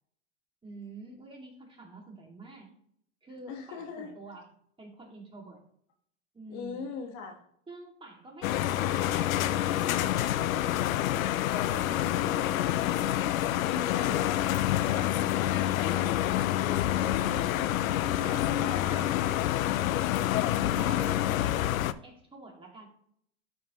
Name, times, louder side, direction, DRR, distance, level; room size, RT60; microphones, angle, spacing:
voice 1, 0.6-2.7 3.2-4.5 4.8-5.6 6.3-6.9 7.7-10.7 11.5-12.1 12.5-13.2 15.6-15.8 17.0-18.5 18.9-19.5 20.1-22.9, right 2 dB, 15° right, 0 dB, 2.2 m, -47 dB
voice 2, 3.5-4.1 6.5-7.4 11.7-12.4 13.5-16.6 18.6-19.1, left 5 dB, 45° left, 4 dB, 1.5 m, -41 dB
sound 1, 8.4-21.9, left 13 dB, 85° left, 0.6 m, -27 dB
12.5 x 5.0 x 3.0 m, 0.67 s
hypercardioid pair, 115°, 40 cm